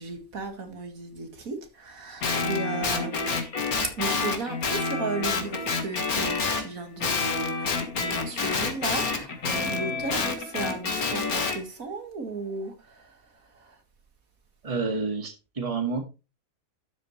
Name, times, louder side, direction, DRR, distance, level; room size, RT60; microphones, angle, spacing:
voice 1, 0.0-3.4 3.8-13.8, right 3 dB, 70° right, 2.4 m, -35 dB
Guitar, 2.2-6.7 7.0-11.6, left 4 dB, 80° left, 2.2 m, -28 dB
voice 2, 14.6-16.0, right 4 dB, 25° right, 1.9 m, -29 dB
12.5 x 7.8 x 3.2 m
omnidirectional pair, 1.5 m